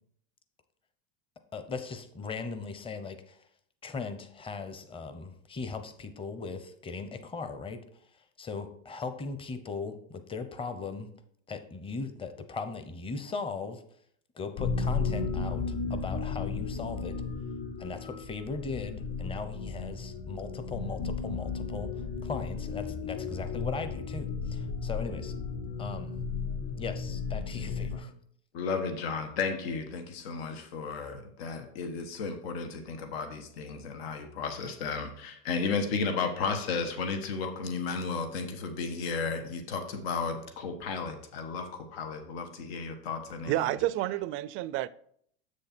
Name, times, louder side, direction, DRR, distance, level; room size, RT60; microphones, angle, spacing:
voice 1, 1.5-3.4 3.8-7.8 8.4-11.1 11.5-13.8 14.4-15.6 15.9-17.2 17.8-25.3 25.8-26.2 26.8-28.1, left 4 dB, 20° left, 0.8 m, -38 dB
sound 1, 14.6-28.0, left 5 dB, 50° left, 3.7 m, -34 dB
voice 2, 28.5-43.8, left 5 dB, 85° left, 1.3 m, -34 dB
voice 3, 43.5-44.9, right 15 dB, 45° right, 0.4 m, -29 dB
7.8 x 6.5 x 4.3 m
supercardioid pair, 130°, 30 cm